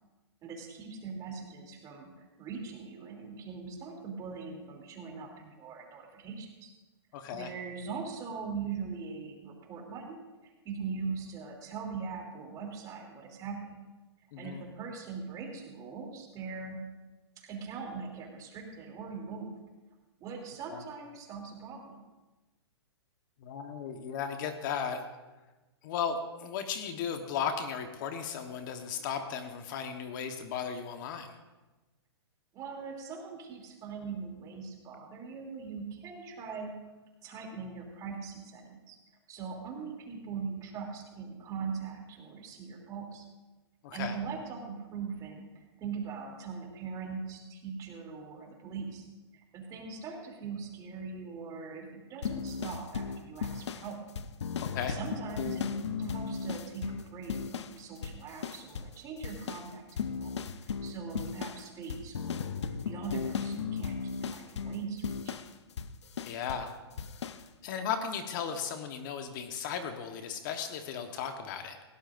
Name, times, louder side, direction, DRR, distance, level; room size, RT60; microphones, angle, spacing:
voice 1, 0.4-6.7 7.3-10.2 10.4-13.8 14.4-16.8 17.4-19.5 20.2-22.0 32.5-36.7 37.2-39.0 39.3-43.3 43.9-45.5 45.8-49.1 49.5-54.0 54.9-60.3 60.6-62.5 62.8-65.3, right 5 dB, 25° right, 1 dB, 3.0 m, -41 dB
voice 2, 7.1-7.5 14.3-14.6 20.7-20.8 23.4-25.0 25.8-31.4 43.8-44.1 54.6-55.0 66.2-66.7 67.6-71.8, left 7 dB, 45° left, 6 dB, 1.2 m, -36 dB
sound 1, 52.2-57.8 58.0-59.0 59.2-66.7 67.0-67.4, left 6 dB, 80° left, 0.8 m, -36 dB
19.5 x 17.0 x 2.6 m, 1.2 s
hypercardioid pair, 140°, 14 cm